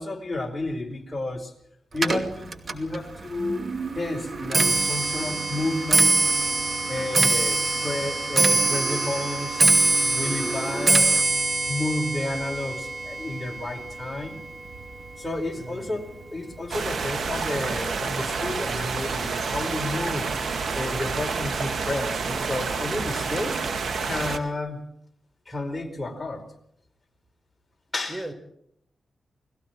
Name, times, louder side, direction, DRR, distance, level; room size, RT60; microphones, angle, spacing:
voice 1, 0.0-1.5 1.9-6.2 6.9-9.7 10.0-11.2 11.7-14.4 15.2-20.3 20.7-23.6 24.0-24.8 25.5-26.5 27.9-28.3, left 2 dB, 20° left, 2 dB, 4.7 m, -31 dB
Clock, 1.9-15.3 15.6-16.1 16.9-17.0 17.3-17.7 17.9-18.0, right 2 dB, 50° right, 2.5 m, -24 dB
voice 2, 15.6-16.0 28.1-28.3, right 1 dB, 30° right, 9 dB, 4.3 m, -37 dB
sound 1, 16.7-24.4, right 4 dB, 70° right, 2.1 m, -29 dB
30.0 x 20.5 x 4.5 m, 0.72 s
cardioid pair, 85°, 0 cm